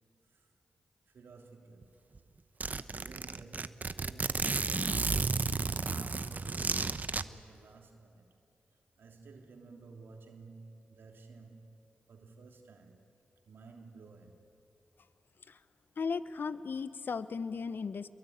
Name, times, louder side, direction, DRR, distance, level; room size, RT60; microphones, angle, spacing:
voice 1, 1.1-1.9 2.9-5.4 5.7-8.3 9.0-11.7 12.1-13.1 13.4-14.4, right 4 dB, 80° right, 3.0 m, -54 dB
Zipper (clothing), 1.8-1.9 2.2-2.3 2.6-7.2, right 4 dB, 45° right, 1.0 m, -32 dB
voice 2, 16.0-18.1, left 5 dB, 65° left, 0.9 m, -36 dB
27.0 x 22.5 x 9.5 m
supercardioid pair, 45°, 4 cm